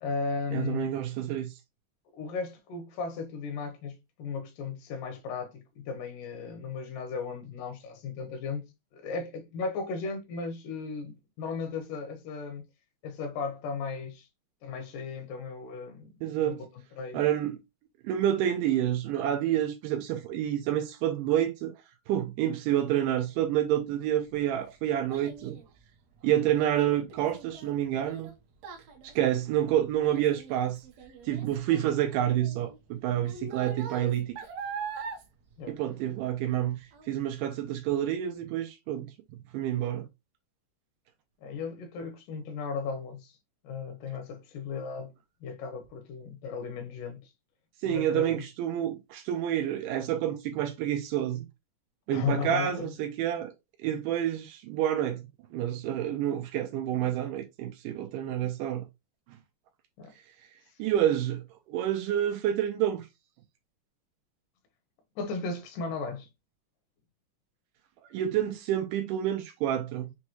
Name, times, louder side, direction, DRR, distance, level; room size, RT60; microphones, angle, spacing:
voice 1, 0.0-0.9 2.1-12.7 13.0-14.3 14.6-16.1 16.4-16.7 17.0-17.2 35.6-35.8 41.4-43.4 43.6-45.1 45.4-47.3 47.8-48.4 52.1-52.9 60.0-60.2 65.2-66.3, left 5 dB, 80° left, 2.4 m, -36 dB
voice 2, 0.5-1.5 16.2-16.6 17.1-17.6 18.0-21.7 22.1-25.6 26.2-28.3 29.0-30.8 31.3-34.4 35.7-39.1 39.5-40.1 47.8-51.5 52.1-53.5 53.8-55.2 55.5-58.8 60.8-63.1 68.1-70.1, right 11 dB, 85° right, 2.1 m, -28 dB
Child speech kid speaking, 23.9-36.6 36.9-37.4 37.9-38.0, right 5 dB, 65° right, 1.8 m, -43 dB
6.3 x 2.3 x 2.9 m
omnidirectional pair, 3.8 m